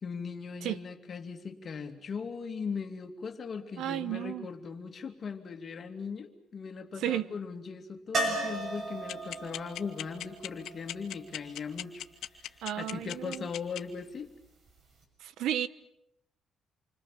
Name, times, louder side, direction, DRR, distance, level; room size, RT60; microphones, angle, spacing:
voice 1, 0.0-12.0 12.4-14.3, left 5 dB, 40° left, 2.7 m, -39 dB
voice 2, 3.8-4.5 7.0-7.3 12.6-13.5 15.2-15.7, right 11 dB, 80° right, 1.0 m, -33 dB
sound 1, 8.1-12.0 14.7-14.8 15.0-15.1, right 2 dB, 50° right, 6.7 m, -36 dB
sound 2, 9.1-13.8, left 12 dB, 80° left, 1.9 m, -37 dB
28.0 x 25.5 x 7.6 m
cardioid pair, 130°, 0 cm